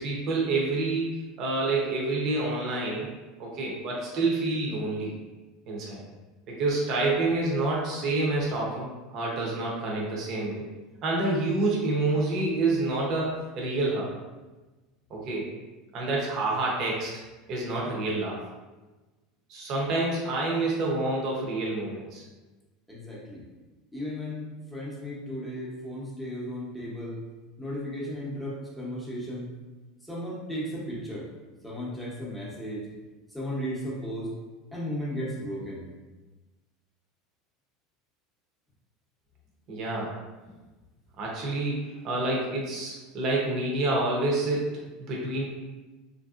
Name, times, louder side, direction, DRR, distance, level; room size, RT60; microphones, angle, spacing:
voice 1, 0.0-3.1 3.4-5.1 5.7-6.0 6.5-10.7 11.0-14.1 15.1-15.5 15.9-17.1 17.5-18.4 19.5-22.2 39.7-40.1 41.2-45.5, right 2 dB, 45° right, -3 dB, 0.7 m, -28 dB
voice 2, 22.9-23.4 23.9-27.2 27.6-29.5 30.0-31.3 31.6-32.9 33.3-34.3 34.7-35.9, equal, ahead, -6 dB, 0.8 m, -35 dB
3.3 x 2.6 x 2.4 m, 1.2 s
supercardioid pair, 140°, 0 cm